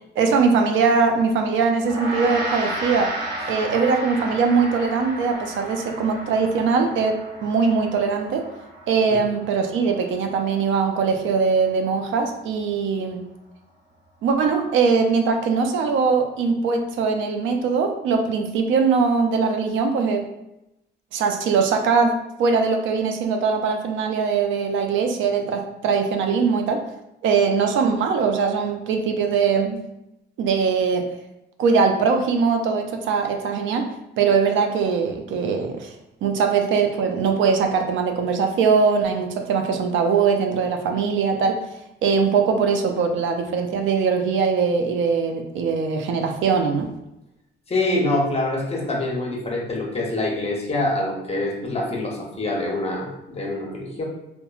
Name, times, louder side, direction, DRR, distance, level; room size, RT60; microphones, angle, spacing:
voice 1, 0.2-3.1 3.5-8.5 8.9-13.2 14.2-20.2 21.1-26.8 27.2-29.8 30.4-31.1 31.6-33.9 34.2-35.9 36.2-41.6 42.0-46.9, right 5 dB, 80° right, 4 dB, 0.4 m, -21 dB
Gong, 1.8-11.3, right 1 dB, 55° right, 1.2 m, -33 dB
voice 2, 47.7-54.0, left 2 dB, 30° left, -1 dB, 0.7 m, -25 dB
2.9 x 2.1 x 2.3 m, 0.88 s
cardioid pair, 90°, 20 cm